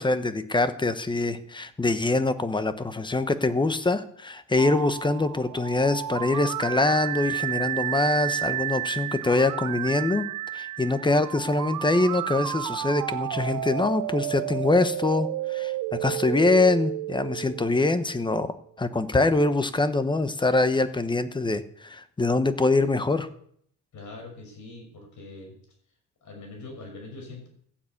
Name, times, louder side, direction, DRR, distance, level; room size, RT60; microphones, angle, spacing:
voice 1, 0.0-10.3 10.5-18.5 18.8-23.3, left 2 dB, 15° left, 12 dB, 1.0 m, -24 dB
sound 1, 4.6-18.4, right 14 dB, 70° right, 0.7 m, -32 dB
voice 2, 23.9-25.6 26.2-27.5, left 2 dB, 60° left, 3 dB, 6.2 m, -42 dB
15.0 x 9.0 x 8.4 m, 0.66 s
cardioid pair, 140°, 33 cm